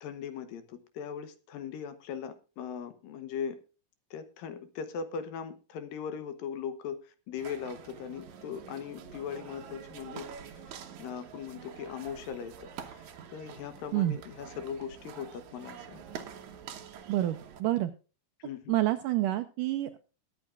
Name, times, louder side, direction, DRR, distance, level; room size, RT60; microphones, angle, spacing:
voice 1, 0.0-3.6 4.1-10.6 11.0-16.0 18.4-18.8, left 7 dB, 70° left, 10 dB, 2.6 m, -39 dB
sound 1, 7.4-17.6, right 7 dB, 65° right, 2.0 m, -47 dB
voice 2, 17.1-17.9 18.7-20.0, right 15 dB, 85° right, 8 dB, 1.9 m, -28 dB
21.5 x 8.8 x 2.4 m, 0.34 s
omnidirectional pair, 4.5 m